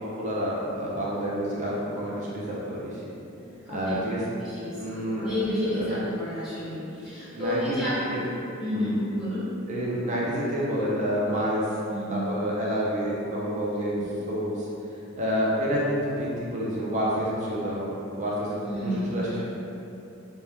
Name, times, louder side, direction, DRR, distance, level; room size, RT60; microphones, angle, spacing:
voice 1, 0.0-3.0 3.7-4.2 4.8-5.3 5.7-6.0 7.3-8.2 8.7-9.0 9.7-11.6 12.1-14.7 15.2-19.4, equal, 35° right, -6 dB, 0.4 m, -29 dB
voice 2, 3.4-4.0 4.4-4.8 5.1-8.1 8.6-9.5 11.9-12.2 18.6-19.4, left 1 dB, 5° right, -13 dB, 1.1 m, -31 dB
2.8 x 2.2 x 3.3 m, 2.8 s
head